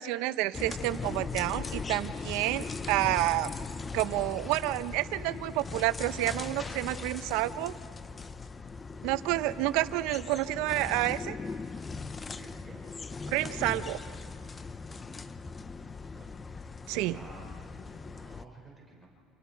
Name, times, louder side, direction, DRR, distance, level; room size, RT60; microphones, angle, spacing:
voice 1, 0.0-3.5 3.9-7.7 9.0-11.4 13.3-14.0 16.9-17.2, right 16 dB, 80° right, 13 dB, 0.8 m, -29 dB
sound 1, 0.5-18.4, left 4 dB, 25° left, 0.7 m, -39 dB
voice 2, 12.2-12.8 15.8-16.5 17.1-19.1, right 2 dB, 5° right, -2 dB, 4.3 m, -53 dB
28.5 x 27.5 x 4.6 m, 2.5 s
supercardioid pair, 105°, 0 cm